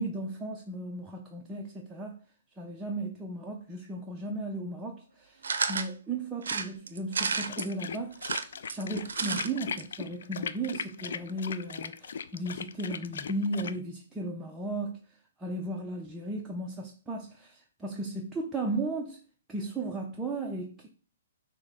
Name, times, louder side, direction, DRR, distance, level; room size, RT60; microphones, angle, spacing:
voice 1, 0.0-2.2 2.6-15.0 15.4-19.2 19.5-20.9, right 2 dB, 10° right, 0.5 m, -35 dB
sound 1, 5.4-5.9 6.4-7.7 8.1-9.5 9.8-9.9 10.1-10.2, right 5 dB, 80° right, 0.5 m, -31 dB
sound 2, 7.3-13.8, left 6 dB, 70° left, 0.3 m, -38 dB
6.2 x 2.1 x 3.6 m
hypercardioid pair, 140°, 0 cm